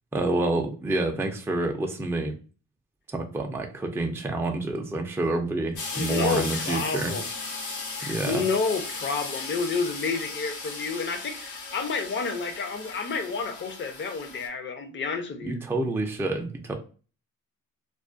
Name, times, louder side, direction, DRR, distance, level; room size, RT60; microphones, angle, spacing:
voice 1, 0.1-2.4 3.1-7.2 8.0-8.5 15.4-16.7, right 2 dB, 10° right, 3 dB, 0.4 m, -28 dB
sound 1, 5.8-14.5, left 3 dB, 80° left, 0.9 m, -36 dB
voice 2, 5.9-7.3 8.0-15.6, left 4 dB, 40° left, 7 dB, 0.6 m, -30 dB
2.4 x 2.1 x 2.4 m, 0.36 s
cardioid pair, 90°, 30 cm